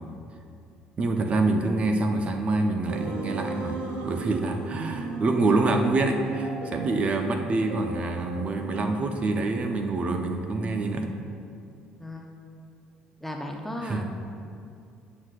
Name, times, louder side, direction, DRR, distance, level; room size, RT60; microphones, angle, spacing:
voice 1, 1.0-11.1 13.8-14.1, right 2 dB, 40° right, 5 dB, 0.7 m, -26 dB
sound 1, 2.9-9.2, right 3 dB, 75° right, 0.7 m, -36 dB
voice 2, 12.0-12.3 13.2-14.1, equal, 5° left, 1 dB, 0.7 m, -35 dB
9.2 x 6.3 x 2.5 m, 2.5 s
supercardioid pair, 80°, 3 cm